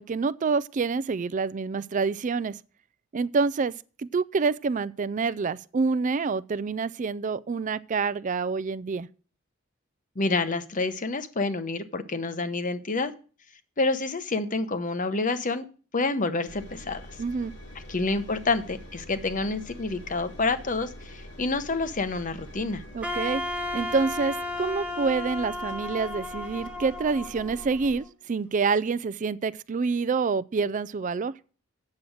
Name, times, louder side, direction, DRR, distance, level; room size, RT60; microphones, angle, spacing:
voice 1, 0.0-2.6 3.1-3.7 4.0-9.1 17.2-17.5 22.9-23.4 23.7-31.3, right 4 dB, 40° right, 0.4 m, -27 dB
voice 2, 10.2-13.1 13.8-15.7 15.9-17.0 17.9-22.8, left 3 dB, 40° left, 0.9 m, -28 dB
Engine, 16.5-28.0, equal, 60° left, 1.9 m, -45 dB
Wind instrument woodwind instrument, 23.0-28.1, left 2 dB, 5° right, 1.3 m, -34 dB
8.5 x 7.6 x 6.4 m
head